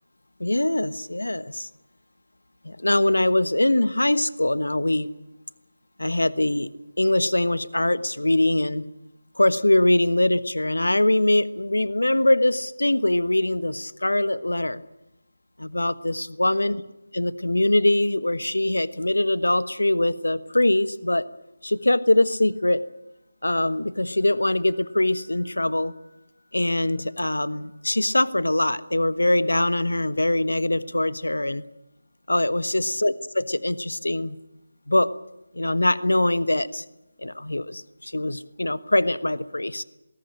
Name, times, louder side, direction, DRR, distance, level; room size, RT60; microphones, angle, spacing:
voice 1, 0.4-1.7 2.6-5.1 6.0-6.7 7.0-8.8 9.4-14.8 15.6-16.8 17.1-21.3 21.6-22.8 23.4-25.9 26.5-31.6 32.3-34.4 34.9-35.1 35.5-36.8 37.2-39.8, left 1 dB, 80° left, 15 dB, 1.3 m, -23 dB
20.0 x 18.0 x 8.7 m, 0.94 s
figure-of-eight pair, 160°, 0 cm